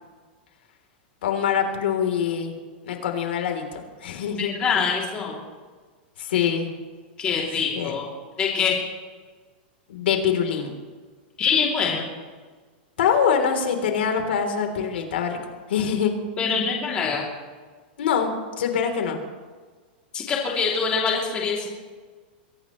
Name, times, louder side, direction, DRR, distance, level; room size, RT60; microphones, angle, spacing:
voice 1, 1.2-2.6 2.8-4.5 6.2-6.7 7.8-7.9 9.9-10.7 13.0-15.4 15.7-16.1 18.0-18.3 18.6-19.2, left 7 dB, 80° left, 3 dB, 3.5 m, -24 dB
voice 2, 4.4-5.4 7.2-8.1 8.4-8.8 11.4-12.1 16.4-17.3 20.1-21.7, left 5 dB, 20° left, -3 dB, 2.9 m, -24 dB
23.0 x 18.0 x 3.2 m, 1.4 s
supercardioid pair, 170°, 6 cm